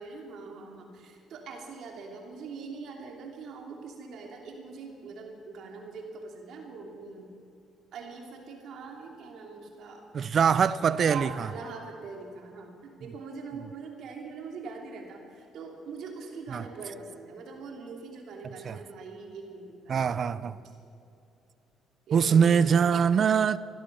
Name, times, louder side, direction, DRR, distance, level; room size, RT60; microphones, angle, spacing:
voice 1, 0.0-7.3 7.9-10.1 11.0-20.4 22.1-23.0, right 4 dB, 70° right, 3.0 m, -42 dB
voice 2, 10.1-11.3 16.5-16.6 18.6-18.8 19.9-20.6 22.1-23.6, right 7 dB, 50° right, 0.6 m, -23 dB
16.0 x 12.0 x 7.1 m
supercardioid pair, 70°, 0 cm